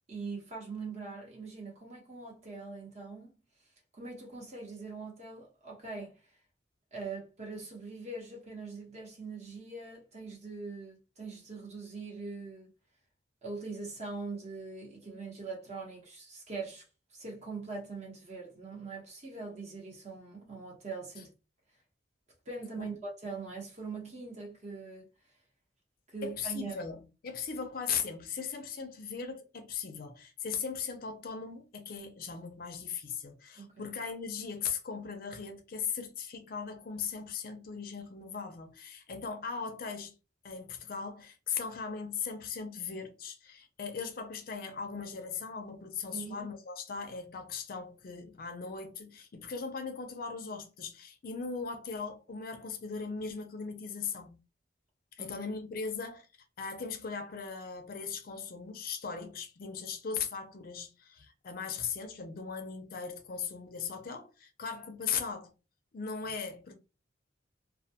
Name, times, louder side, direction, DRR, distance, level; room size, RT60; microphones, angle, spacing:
voice 1, 0.1-3.4 3.9-6.2 6.9-12.7 13.4-16.8 17.1-21.3 22.5-25.1 26.1-26.8 33.6-34.0 46.1-46.5 55.2-55.3, right 4 dB, 40° right, 0.8 m, -42 dB
voice 2, 26.2-40.1 40.4-54.4 55.2-56.3 56.6-65.5 65.9-66.7, left 6 dB, 50° left, 0.4 m, -38 dB
2.2 x 2.1 x 2.7 m
head